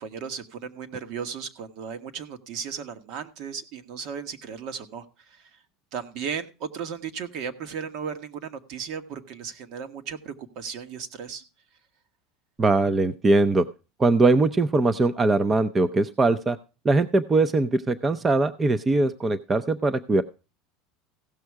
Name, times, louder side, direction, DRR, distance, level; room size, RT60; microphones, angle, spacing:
voice 1, 0.0-5.5 5.9-11.4, right 6 dB, 60° right, 9 dB, 1.4 m, -35 dB
voice 2, 12.6-13.7 14.0-16.6 16.8-20.2, right 3 dB, 20° right, 13 dB, 0.6 m, -21 dB
16.0 x 6.3 x 4.7 m, 0.32 s
supercardioid pair, 125°, 0 cm